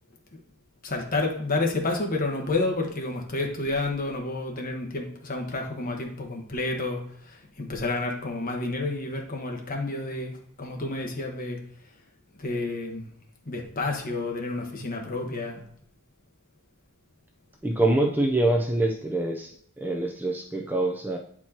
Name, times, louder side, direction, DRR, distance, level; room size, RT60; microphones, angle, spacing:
voice 1, 0.8-11.6 12.4-13.1 13.4-15.6, left 2 dB, 40° left, 1 dB, 1.4 m, -30 dB
voice 2, 17.6-21.2, right 2 dB, 10° right, 1 dB, 0.5 m, -25 dB
9.3 x 4.4 x 2.9 m, 0.65 s
head